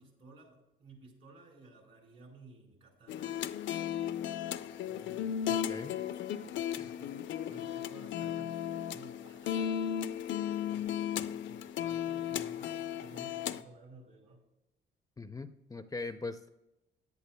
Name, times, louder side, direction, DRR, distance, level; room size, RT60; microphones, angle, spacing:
voice 1, 0.0-3.3 4.9-9.8 10.6-14.4 16.0-16.1, right 2 dB, 65° right, 0 dB, 4.2 m, -56 dB
sound 1, 3.1-13.6, left 9 dB, 70° left, 0.5 m, -35 dB
voice 2, 15.2-16.5, left 3 dB, 20° left, 10 dB, 0.5 m, -41 dB
17.0 x 10.5 x 2.2 m, 0.94 s
cardioid pair, 90°, 20 cm